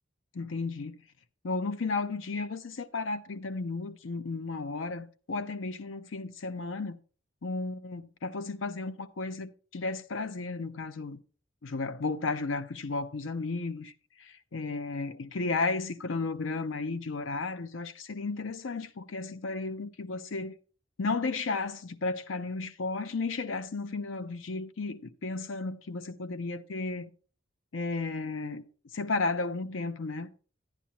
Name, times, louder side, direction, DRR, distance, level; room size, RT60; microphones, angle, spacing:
voice 1, 0.3-1.0 1.4-7.0 7.4-11.2 11.6-13.9 14.2-20.5 21.0-27.1 27.7-28.6 28.9-30.3, left 3 dB, 80° left, 0.6 m, -33 dB
10.0 x 9.9 x 2.9 m
head